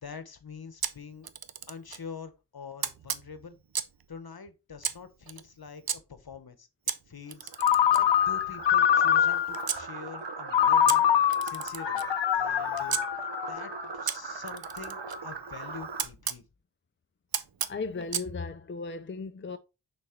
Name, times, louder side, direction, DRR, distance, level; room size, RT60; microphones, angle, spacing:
voice 1, 0.0-1.3 1.7-3.6 4.1-6.7 7.1-7.5 7.9-11.0 11.4-12.1 12.3-13.0 13.5-16.4, left 5 dB, 60° left, 1.1 m, -45 dB
Camera, 0.8-2.1 2.8-4.0 4.8-6.0 6.9-9.8 10.9-13.0 14.1-16.4 17.3-18.3, right 7 dB, 60° right, 0.7 m, -36 dB
sound 1, 7.4-16.1, right 4 dB, 85° right, 1.2 m, -40 dB
Ringtone, 7.6-9.7 10.5-13.9, left 10 dB, 85° left, 0.5 m, -24 dB
voice 2, 17.7-19.6, left 4 dB, 30° left, 0.5 m, -36 dB
6.2 x 4.3 x 4.4 m
wide cardioid pair, 60°, 42 cm